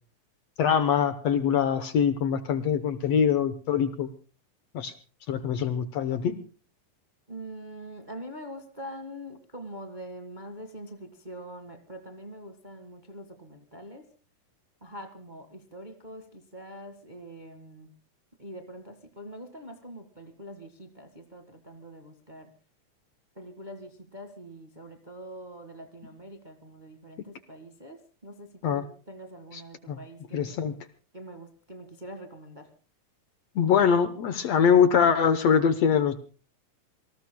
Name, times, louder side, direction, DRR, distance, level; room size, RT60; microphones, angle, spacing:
voice 1, 0.6-4.1 4.7-4.9 5.3-6.4 28.6-28.8 29.9-30.0 30.3-30.7 33.6-36.2, left 7 dB, 65° left, 11 dB, 1.8 m, -23 dB
voice 2, 7.3-14.1 14.8-17.9 18.4-22.5 23.3-30.7 31.1-32.7, right 1 dB, 20° right, 6 dB, 1.2 m, -44 dB
27.5 x 19.0 x 2.2 m, 0.36 s
omnidirectional pair, 3.7 m